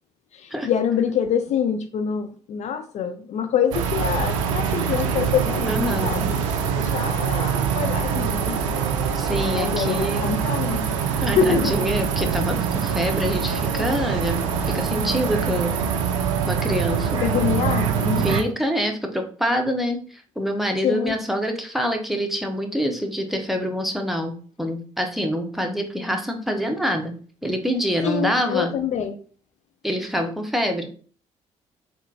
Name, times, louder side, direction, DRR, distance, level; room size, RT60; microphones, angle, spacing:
voice 1, 0.3-6.4 6.8-8.8 9.5-10.9 11.4-11.8 17.2-18.5 20.8-21.2 28.0-29.2, left 7 dB, 45° left, 7 dB, 0.4 m, -25 dB
sound 1, 3.7-18.4, right 7 dB, 80° right, 0.4 m, -24 dB
voice 2, 5.6-6.2 9.1-10.3 11.2-15.8 16.5-17.2 18.2-27.1 27.4-28.7 29.8-30.9, equal, ahead, 4 dB, 0.7 m, -26 dB
3.6 x 2.3 x 2.7 m, 0.43 s
figure-of-eight pair, 45°, 16 cm